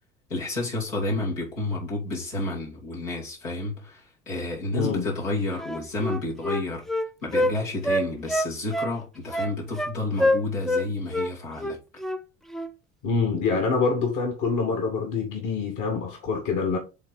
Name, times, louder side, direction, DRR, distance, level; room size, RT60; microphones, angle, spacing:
voice 1, 0.3-6.9 7.2-11.8, left 2 dB, 90° left, 2.8 m, -30 dB
voice 2, 4.7-5.1 13.0-16.8, left 4 dB, 55° left, 1.8 m, -25 dB
Wind instrument woodwind instrument, 5.6-7.5 7.8-9.0 9.3-9.9 10.2-10.9 11.1-11.3 11.6-12.2 12.5-12.7, left 1 dB, ahead, 0.4 m, -26 dB
8.1 x 3.8 x 4.0 m
figure-of-eight pair, 60°, 37 cm